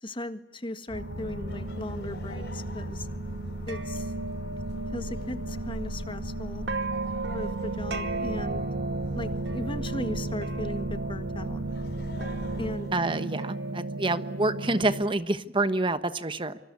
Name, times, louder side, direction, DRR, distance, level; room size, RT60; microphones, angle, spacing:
voice 1, 0.0-3.1 3.7-4.1 4.9-6.7 7.3-8.7 9.1-11.7 12.6-12.9, left 1 dB, 30° left, 10 dB, 1.7 m, -37 dB
sound 1, 0.9-12.7, equal, 85° left, 7.5 m, -38 dB
sound 2, 0.9-15.0, right 3 dB, 85° right, 2.1 m, -34 dB
Laughter, 1.5-10.5 11.4-13.7, left 2 dB, 70° left, 5.5 m, -51 dB
voice 2, 12.9-16.6, right 2 dB, 30° right, 12 dB, 1.2 m, -27 dB
26.0 x 25.5 x 8.4 m, 0.87 s
head